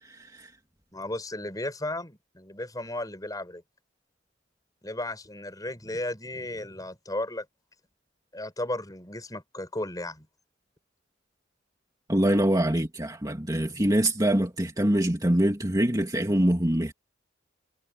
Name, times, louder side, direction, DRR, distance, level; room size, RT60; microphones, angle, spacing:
voice 1, 0.1-0.5 12.1-16.9, right 1 dB, 20° right, 2.6 m, -24 dB
voice 2, 0.9-3.6 4.8-7.5 8.3-10.3 13.6-13.8, left 1 dB, 20° left, 6.4 m, -35 dB
head